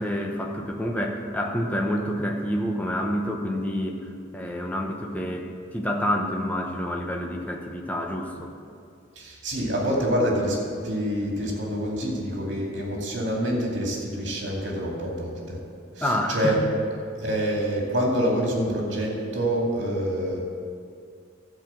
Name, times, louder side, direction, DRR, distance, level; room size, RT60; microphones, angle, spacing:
voice 1, 0.0-8.5 16.0-16.7, equal, 10° left, 1 dB, 0.8 m, -28 dB
voice 2, 9.2-10.6 10.8-15.6 15.9-16.6 17.2-20.4, equal, 65° right, -2 dB, 2.4 m, -26 dB
12.5 x 5.0 x 7.4 m, 2.3 s
head